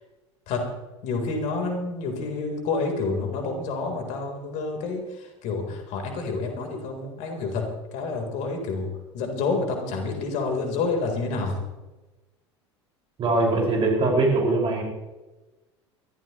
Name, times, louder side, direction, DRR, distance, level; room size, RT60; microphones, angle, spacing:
voice 1, 1.0-8.9 9.1-11.6, left 3 dB, 50° left, 3 dB, 3.8 m, -28 dB
voice 2, 13.2-14.8, right 2 dB, 35° right, -1 dB, 5.4 m, -22 dB
23.0 x 14.5 x 3.1 m, 1.1 s
figure-of-eight pair, 75°, 15 cm